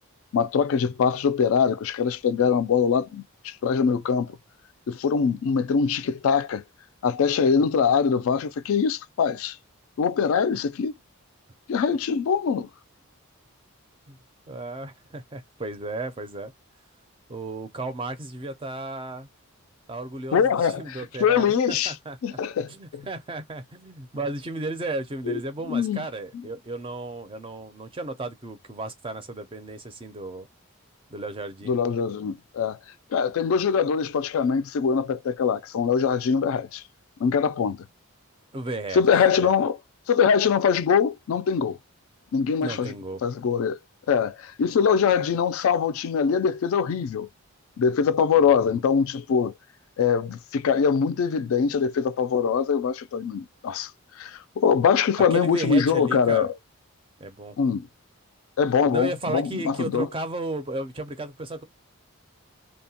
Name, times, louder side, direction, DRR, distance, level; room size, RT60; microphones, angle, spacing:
voice 1, 0.3-4.4 4.9-6.6 7.0-9.6 10.0-10.9 11.7-12.7 20.3-21.0 21.2-21.9 22.2-23.1 25.3-25.4 25.7-26.0 26.3-26.4 31.7-32.8 33.1-36.8 37.2-37.8 38.9-39.8 40.1-41.8 42.3-42.9 43.2-43.8 44.1-47.3 47.8-49.5 50.0-53.9 54.2-56.5 57.6-57.9 58.6-60.1, left 6 dB, 70° left, 0.3 m, -23 dB
voice 2, 14.5-16.5 17.3-19.3 19.9-22.4 22.7-30.5 31.1-31.8 38.5-39.6 42.6-43.2 48.4-48.8 55.3-56.5 57.2-57.6 58.9-61.6, right 2 dB, 25° right, 0.4 m, -34 dB
2.7 x 2.1 x 2.7 m
head